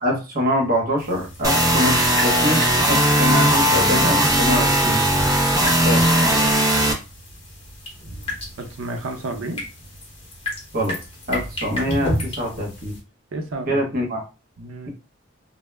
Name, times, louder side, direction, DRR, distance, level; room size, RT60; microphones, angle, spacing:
voice 1, 0.0-5.0 5.6-6.1 10.7-10.9 11.3-12.9 13.7-14.2, equal, 50° right, 0 dB, 0.9 m, -24 dB
sound 1, 1.0-13.0, equal, 30° left, 0.9 m, -34 dB
sound 2, 1.4-6.9, right 1 dB, 20° right, 0.4 m, -18 dB
voice 2, 8.6-9.6 13.3-13.8 14.6-14.9, right 2 dB, 85° right, 4 dB, 0.6 m, -31 dB
2.0 x 2.0 x 3.3 m, 0.30 s
head